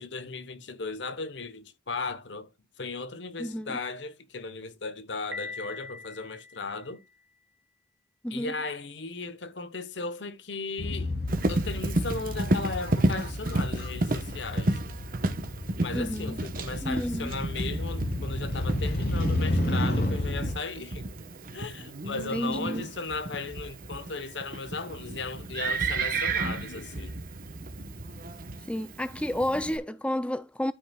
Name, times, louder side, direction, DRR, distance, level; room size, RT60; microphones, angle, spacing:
voice 1, 0.0-2.5 2.8-7.0 8.3-11.1 11.5-14.8 15.8-21.1 21.5-27.2, left 3 dB, 75° left, 1.1 m, -36 dB
voice 2, 3.4-3.8 8.2-8.5 15.9-16.4 16.8-17.3 22.3-22.8 28.7-30.7, left 1 dB, 5° left, 0.4 m, -30 dB
Piano, 5.3-7.3, left 3 dB, 80° right, 1.8 m, -42 dB
Motorcycle, 10.8-20.5, left 1 dB, 50° left, 3.2 m, -32 dB
Livestock farm animals working animals, 11.3-29.8, right 2 dB, 50° right, 1.0 m, -32 dB
12.5 x 5.5 x 2.3 m
head